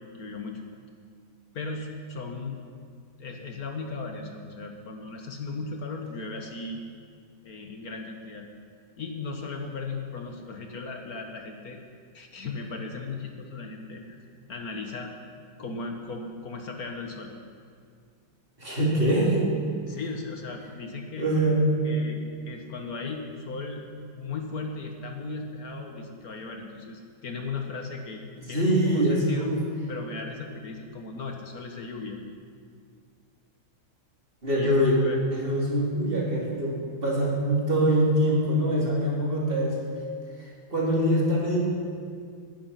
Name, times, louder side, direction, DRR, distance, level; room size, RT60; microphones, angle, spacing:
voice 1, 0.1-0.6 1.5-2.6 3.2-6.8 7.4-8.5 9.0-11.8 12.1-14.0 14.5-15.1 15.6-17.3 19.9-21.3 21.8-23.9 24.1-28.2 28.5-29.6 29.9-32.2 34.5-35.4, left 3 dB, 65° left, 3 dB, 1.7 m, -37 dB
voice 2, 18.6-19.5 21.2-21.6 28.5-29.6 34.4-35.0 35.3-39.8 40.4-41.6, right 1 dB, 30° right, -5 dB, 3.6 m, -24 dB
19.5 x 10.5 x 5.8 m, 2.2 s
omnidirectional pair, 1.8 m